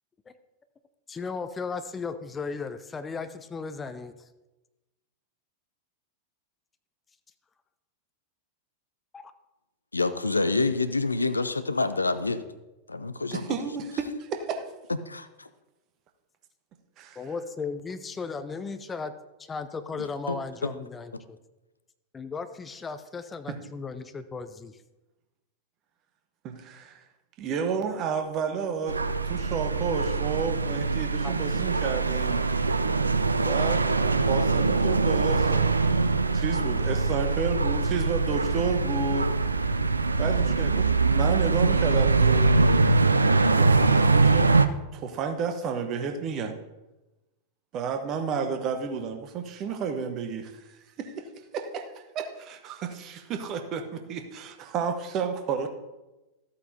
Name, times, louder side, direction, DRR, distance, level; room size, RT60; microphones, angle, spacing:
voice 1, 1.1-4.1 9.1-9.3 17.2-19.1 19.4-21.4 22.1-24.8 31.2-31.3, left 4 dB, 15° left, 11 dB, 0.5 m, -36 dB
voice 2, 9.9-12.5 12.9-13.5 15.1-15.5 20.3-20.4 20.6-20.7, left 3 dB, 80° left, 12 dB, 0.5 m, -27 dB
voice 3, 13.3-14.6 17.0-17.2 23.5-23.6 26.4-27.0 27.4-32.4 33.4-33.8 34.2-35.7 36.3-39.3 40.2-42.6 43.5-44.5 44.9-46.5 47.7-51.3 51.5-55.7, right 6 dB, 35° right, 6 dB, 1.0 m, -31 dB
sound 1, 28.9-44.7, right 3 dB, 80° right, 0.4 m, -23 dB
13.5 x 8.3 x 2.7 m, 1.0 s
figure-of-eight pair, 90°, 0 cm